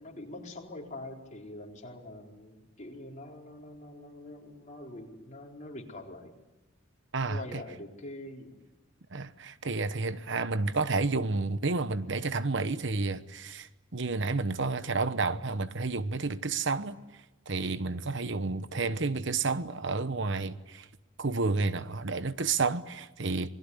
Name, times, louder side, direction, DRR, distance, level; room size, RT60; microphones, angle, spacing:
voice 1, 0.0-6.3 7.3-8.6, left 1 dB, 35° left, 4.3 m, -44 dB
voice 2, 7.1-7.6 9.1-20.9 21.2-23.5, right 3 dB, 60° right, 1.1 m, -31 dB
27.5 x 21.0 x 10.0 m
head